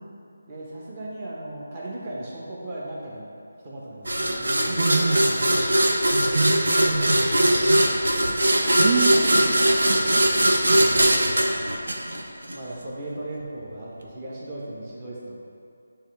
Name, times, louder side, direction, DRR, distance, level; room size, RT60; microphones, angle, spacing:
voice 1, 0.4-3.3 3.6-6.1 6.9-8.3 10.2-10.4 10.7-11.7 12.5-15.4, right 1 dB, 30° right, -6 dB, 1.4 m, -37 dB
sound 1, 4.1-12.6, right 1 dB, 80° right, 0.8 m, -20 dB
voice 2, 4.8-5.2 6.3-7.1 8.8-10.0, right 4 dB, 50° right, -2 dB, 0.5 m, -26 dB
9.7 x 3.4 x 3.6 m, 2.5 s
figure-of-eight pair, 160°, 0 cm